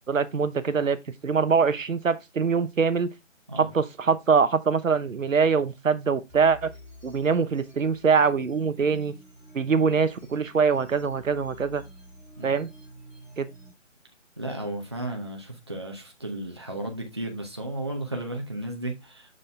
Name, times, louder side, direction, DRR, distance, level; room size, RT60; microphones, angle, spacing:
voice 1, 0.1-1.0 1.2-3.1 3.6-6.7 7.0-9.1 9.5-11.8 12.4-12.7 13.4-13.5, right 5 dB, 85° right, 1.0 m, -23 dB
sound 1, 6.3-13.7, equal, 5° left, 1.9 m, -50 dB
voice 2, 14.4-19.4, right 1 dB, 20° right, 0.8 m, -34 dB
7.4 x 4.4 x 3.3 m
figure-of-eight pair, 175°, 38 cm